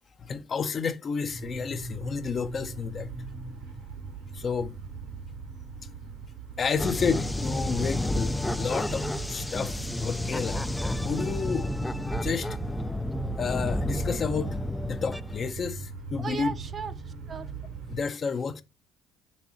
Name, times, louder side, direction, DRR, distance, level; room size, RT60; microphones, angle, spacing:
voice 1, 0.2-3.1 4.3-4.8 6.6-10.7 11.0-12.6 13.4-14.6 14.9-16.5 17.9-18.6, left 5 dB, 45° left, 0.7 m, -31 dB
sound 1, 1.3-18.0, right 4 dB, 85° right, 2.1 m, -40 dB
sound 2, 6.8-15.5, left 1 dB, 10° left, 0.4 m, -31 dB
voice 2, 16.2-17.5, right 5 dB, 40° right, 0.7 m, -36 dB
5.9 x 4.1 x 4.1 m
supercardioid pair, 75°, 0 cm